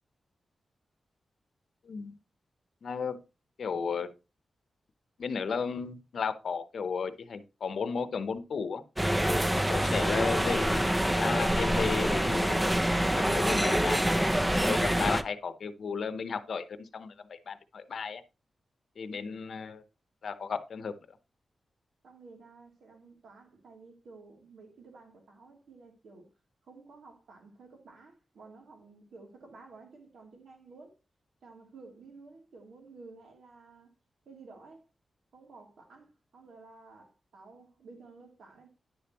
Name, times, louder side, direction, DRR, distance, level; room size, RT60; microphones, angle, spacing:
voice 1, 1.8-2.1 2.8-3.2 3.6-4.1 5.2-8.8 9.7-10.8 11.2-12.8 13.2-14.1 14.5-18.2 19.0-19.8 20.2-21.2, left 5 dB, 65° left, 0.8 m, -34 dB
sound 1, 9.0-15.2, equal, 10° right, 0.5 m, -26 dB
voice 2, 22.0-26.3 26.6-31.0 31.4-33.9 34.2-34.9 35.3-38.7, right 3 dB, 85° right, 2.9 m, -53 dB
10.0 x 6.9 x 3.0 m
wide cardioid pair, 165°, 0 cm